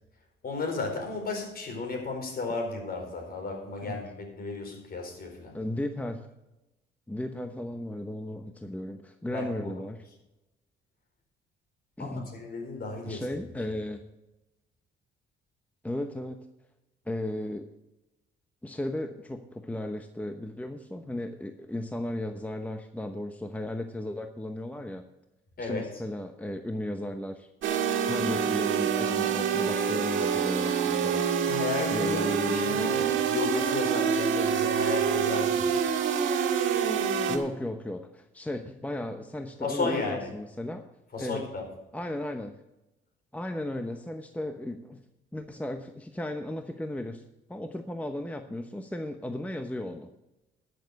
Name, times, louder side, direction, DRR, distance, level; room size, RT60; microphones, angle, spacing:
voice 1, 0.4-5.6 9.3-9.8 12.0-13.4 25.6-25.9 31.5-35.8 39.6-40.3 41.1-41.7, left 3 dB, 50° left, 3 dB, 4.4 m, -34 dB
voice 2, 5.5-6.3 7.1-10.0 12.0-12.3 13.0-14.0 15.8-16.4 17.1-17.7 18.6-25.0 25.6-27.5 28.0-31.5 31.9-32.9 37.3-40.9 41.2-41.4 41.9-42.6 43.3-45.0 45.3-47.2 47.5-50.1, left 1 dB, 5° left, 6 dB, 0.9 m, -35 dB
sound 1, 27.6-37.4, right 7 dB, 75° right, 1.8 m, -26 dB
12.5 x 6.9 x 6.4 m, 0.94 s
cardioid pair, 90°, 20 cm